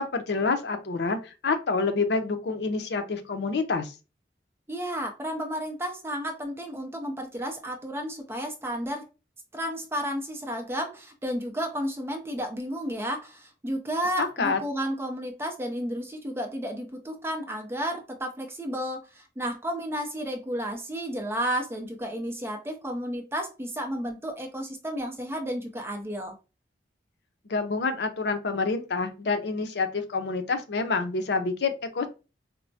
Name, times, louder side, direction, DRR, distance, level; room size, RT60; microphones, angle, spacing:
voice 1, 0.0-3.9 14.2-14.6 27.5-32.1, left 4 dB, 75° left, 8 dB, 0.5 m, -27 dB
voice 2, 4.7-9.0 9.5-26.3, equal, 15° right, 4 dB, 0.5 m, -32 dB
4.3 x 2.0 x 2.6 m, 0.30 s
head